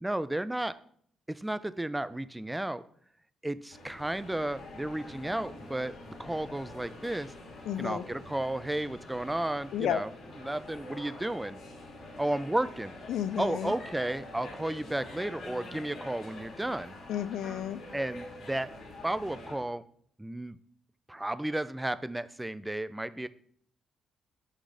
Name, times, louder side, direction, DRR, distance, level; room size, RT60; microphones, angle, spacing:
voice 1, 0.0-0.8 1.3-2.8 3.4-7.3 7.8-10.1 10.4-11.6 12.2-12.9 13.4-16.9 17.9-18.7 19.0-19.8 20.2-20.6 21.1-23.3, right 1 dB, 10° right, 15 dB, 0.4 m, -33 dB
sound 1, 3.7-19.5, left 2 dB, 65° left, 2.9 m, -46 dB
voice 2, 7.7-8.0 9.7-10.0 13.1-13.7 17.1-17.8, left 10 dB, 80° left, 16 dB, 0.4 m, -32 dB
6.4 x 4.1 x 6.3 m, 0.62 s
cardioid pair, 105°, 0 cm